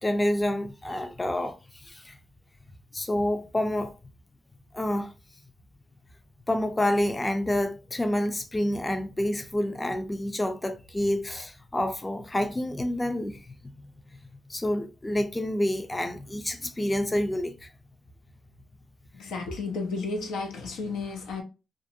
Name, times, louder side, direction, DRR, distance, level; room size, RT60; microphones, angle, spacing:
voice 1, 0.0-2.2 2.9-4.0 4.7-5.1 6.5-13.5 14.5-17.7, left 1 dB, 20° left, 0.4 m, -28 dB
voice 2, 19.1-21.4, left 3 dB, 85° left, 0.6 m, -32 dB
2.5 x 2.1 x 2.6 m
supercardioid pair, 55°, 0 cm